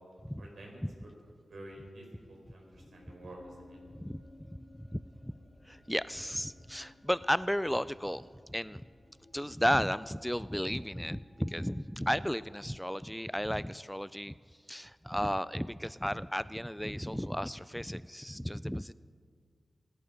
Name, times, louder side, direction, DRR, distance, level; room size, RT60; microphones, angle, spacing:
voice 1, 0.4-0.8 1.5-3.8, right 1 dB, 80° right, 0 dB, 4.9 m, -49 dB
sound 1, 2.7-12.5, left 1 dB, 25° left, 2.5 m, -58 dB
voice 2, 4.8-5.3 5.6-8.8 9.3-14.3 14.7-18.9, equal, 5° left, 17 dB, 0.3 m, -34 dB
24.5 x 11.5 x 5.2 m, 2.1 s
cardioid pair, 60°, 0 cm